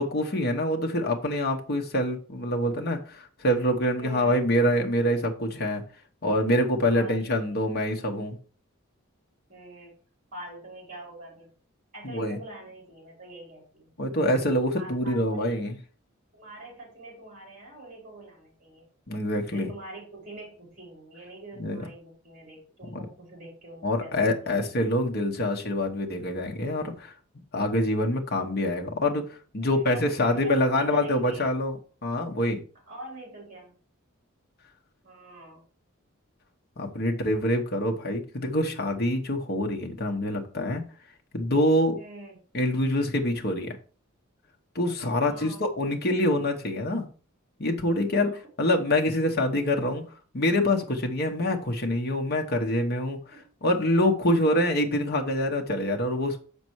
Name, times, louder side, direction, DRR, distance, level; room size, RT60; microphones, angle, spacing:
voice 1, 0.0-5.8 6.2-8.4 12.0-12.4 14.0-15.8 19.1-19.7 21.6-21.8 23.8-27.1 27.5-29.2 29.5-32.6 36.8-40.8 41.3-42.0 42.5-43.8 44.7-47.1 47.6-48.3 48.6-50.0 50.3-53.2 53.6-56.4, left 1 dB, 50° left, 1.2 m, -25 dB
voice 2, 4.0-4.4 6.9-7.3 9.5-9.9 10.3-11.5 11.9-13.9 14.7-15.6 16.3-18.9 19.5-24.7 29.6-31.5 32.9-33.8 35.0-35.6 41.9-42.4 45.1-45.7 48.3-48.4 48.8-49.0 51.2-51.4 53.3-53.5, right 2 dB, 40° right, 3.9 m, -44 dB
7.0 x 5.4 x 4.6 m
head